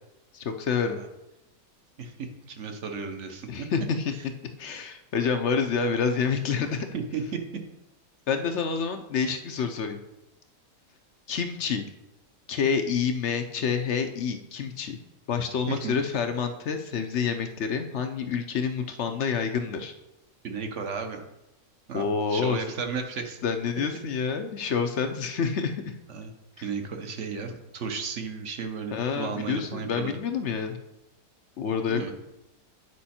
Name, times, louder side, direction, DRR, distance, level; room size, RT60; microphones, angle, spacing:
voice 1, 0.3-1.0 3.5-4.1 4.6-6.9 8.3-10.0 11.3-11.8 12.5-15.0 15.3-19.9 21.9-22.6 23.4-25.9 26.6-26.7 28.9-30.8 31.6-32.1, left 6 dB, 60° left, 6 dB, 0.7 m, -28 dB
voice 2, 2.0-3.7 6.9-7.2 7.5-7.6 15.7-16.0 20.4-21.2 21.9-23.4 26.1-26.3 26.6-30.1 31.9-32.1, right 5 dB, 50° right, 5 dB, 1.1 m, -34 dB
9.4 x 5.3 x 4.3 m, 0.91 s
omnidirectional pair, 1.9 m